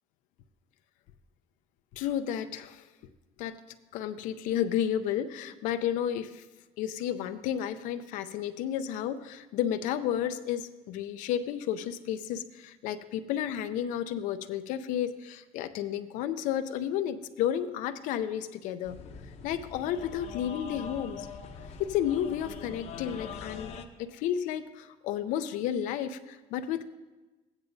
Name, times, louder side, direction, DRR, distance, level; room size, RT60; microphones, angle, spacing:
voice 1, 1.9-2.8 3.4-3.6 3.9-6.4 6.8-19.0 19.4-21.3 21.8-23.7 24.0-26.9, left 10 dB, 85° left, 10 dB, 0.5 m, -32 dB
sound 1, 18.8-23.8, left 5 dB, 60° left, 0.8 m, -43 dB
15.0 x 9.6 x 2.7 m, 1.2 s
cardioid pair, 105°, 13 cm